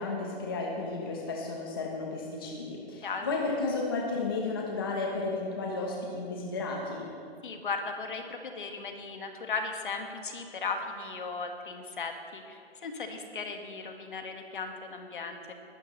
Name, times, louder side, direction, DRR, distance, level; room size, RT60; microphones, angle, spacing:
voice 1, 0.0-7.1, left 3 dB, 20° left, -1 dB, 0.9 m, -33 dB
voice 2, 7.4-15.5, left 4 dB, 50° left, 5 dB, 1.5 m, -37 dB
19.5 x 12.0 x 3.0 m, 2.3 s
hypercardioid pair, 175°, 32 cm